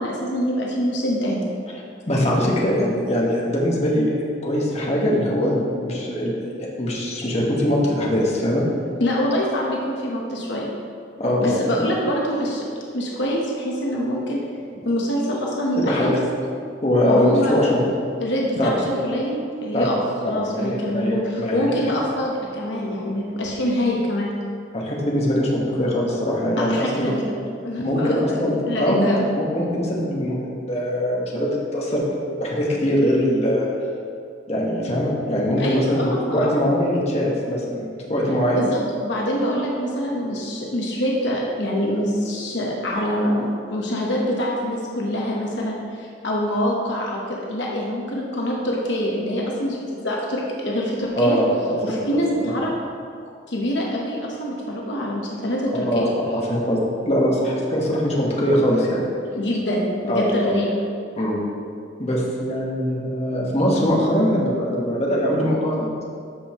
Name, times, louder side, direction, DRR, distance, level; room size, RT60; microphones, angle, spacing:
voice 1, 0.0-1.4 9.0-10.6 11.4-12.6 12.9-14.4 14.8-16.2 17.0-17.8 18.2-20.0 20.2-24.3 26.6-27.3 27.6-28.4 28.7-29.3 35.6-36.7 38.5-51.4 51.8-52.7 53.5-56.1 59.3-60.8, equal, 70° left, -2 dB, 1.0 m, -25 dB
voice 2, 2.1-4.1 4.4-8.6 11.2-11.9 15.8-16.2 16.8-17.8 18.6-18.7 19.7-21.9 24.7-27.1 27.8-29.1 29.3-33.7 34.5-38.6 51.2-52.5 55.9-59.0 60.1-60.5 61.2-61.4 62.0-65.9, equal, 35° left, -4 dB, 1.3 m, -22 dB
13.0 x 5.4 x 3.0 m, 2.3 s
head